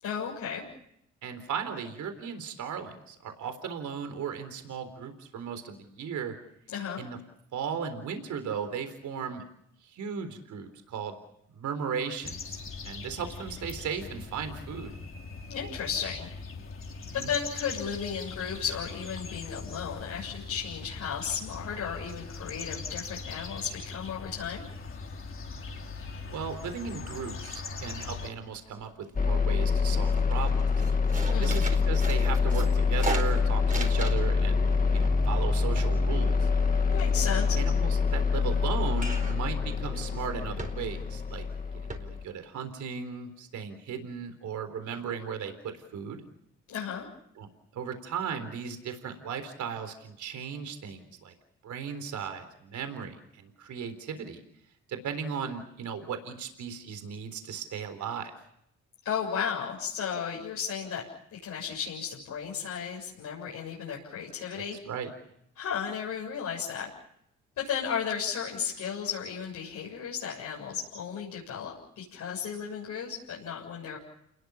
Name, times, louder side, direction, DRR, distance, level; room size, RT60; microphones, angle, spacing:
voice 1, 0.0-0.6 6.7-7.0 15.5-16.3 17.1-24.6 31.3-31.6 36.9-37.6 46.7-47.1 59.0-61.1 61.3-64.8 65.6-66.9 67.6-74.0, left 7 dB, 80° left, -4 dB, 7.4 m, -34 dB
voice 2, 1.2-6.3 7.0-7.2 7.5-9.4 9.8-11.2 11.5-14.9 17.2-17.3 26.3-30.7 31.4-34.7 34.9-36.5 37.5-41.5 41.8-46.2 47.4-51.3 51.6-54.4 54.9-58.3 64.5-65.1, right 7 dB, 75° right, 8 dB, 3.9 m, -36 dB
sound 1, 12.2-28.3, left 4 dB, 45° left, 3.3 m, -41 dB
sound 2, 27.6-28.1 28.4-29.2 29.6-29.8 30.1-34.4 34.7-37.1 38.9-39.5 39.9-40.1 40.6-41.1 41.5-41.6 41.9-42.0, right 3 dB, 25° right, 4.4 m, -39 dB
sound 3, 29.2-42.2, left 5 dB, 30° left, 2.1 m, -26 dB
29.0 x 20.5 x 7.2 m, 0.76 s
cardioid pair, 90°, 30 cm